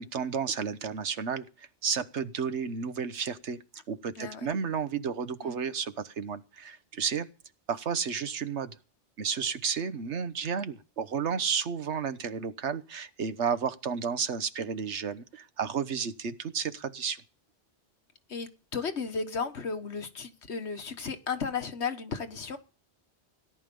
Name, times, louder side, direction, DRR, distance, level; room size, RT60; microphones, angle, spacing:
voice 1, 0.0-3.6 3.9-7.3 7.7-8.7 9.2-17.2, right 6 dB, 80° right, 1.4 m, -32 dB
voice 2, 4.1-4.5 5.4-5.5 18.3-22.6, left 5 dB, 75° left, 1.7 m, -34 dB
17.5 x 11.0 x 5.4 m
omnidirectional pair, 1.2 m